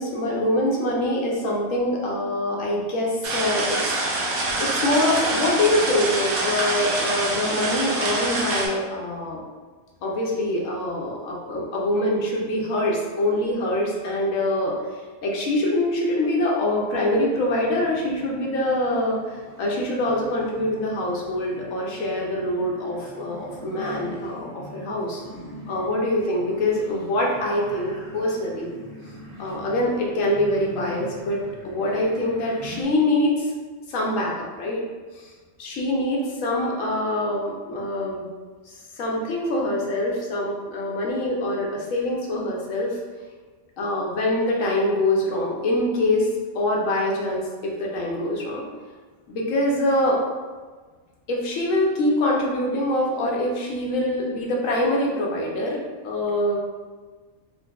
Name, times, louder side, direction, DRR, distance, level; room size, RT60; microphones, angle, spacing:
voice 1, 0.0-4.0 4.6-9.4 10.0-14.7 15.2-25.2 25.7-28.7 29.4-33.5 33.9-34.8 35.2-35.3 35.6-38.3 38.7-43.0 43.8-46.3 46.5-48.7 49.3-50.2 51.3-56.6, left 1 dB, 70° left, -2 dB, 1.0 m, -24 dB
sound 1, 3.2-8.7, right 2 dB, 80° right, 1.1 m, -25 dB
sound 2, 17.1-32.8, equal, 50° right, 0.9 m, -43 dB
3.7 x 2.5 x 2.3 m, 1.4 s
omnidirectional pair, 1.5 m